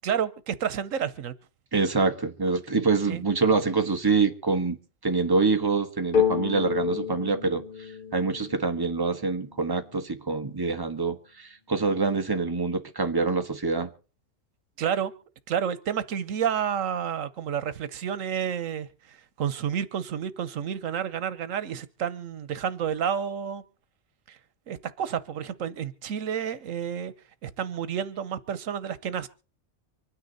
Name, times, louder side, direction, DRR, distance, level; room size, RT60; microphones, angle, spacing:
voice 1, 0.0-1.3 3.1-3.2 14.8-15.1 15.5-23.6 24.3-24.4 24.7-27.1 27.4-29.3, right 8 dB, 85° right, 1.3 m, -30 dB
voice 2, 1.7-4.8 5.0-7.6 8.1-13.9, right 4 dB, 20° right, 1.4 m, -25 dB
sound 1, 6.1-9.8, left 8 dB, 40° left, 1.4 m, -30 dB
25.5 x 9.8 x 4.1 m
omnidirectional pair, 1.3 m